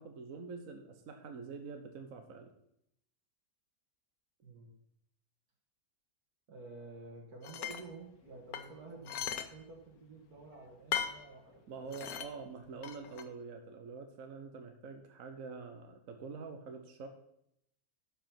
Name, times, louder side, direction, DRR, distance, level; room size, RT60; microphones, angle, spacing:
voice 1, 0.0-2.5 11.7-17.1, right 4 dB, 65° right, 5 dB, 1.4 m, -46 dB
voice 2, 4.4-4.7 6.5-12.0 14.4-14.5, right 3 dB, 85° right, -1 dB, 2.2 m, -51 dB
sound 1, 7.4-7.8 8.5-9.5 9.8-9.9 10.9-11.2 11.9-12.3 12.8-13.2, left 9 dB, 80° left, 1.3 m, -37 dB
12.0 x 5.4 x 5.8 m, 0.75 s
omnidirectional pair, 1.6 m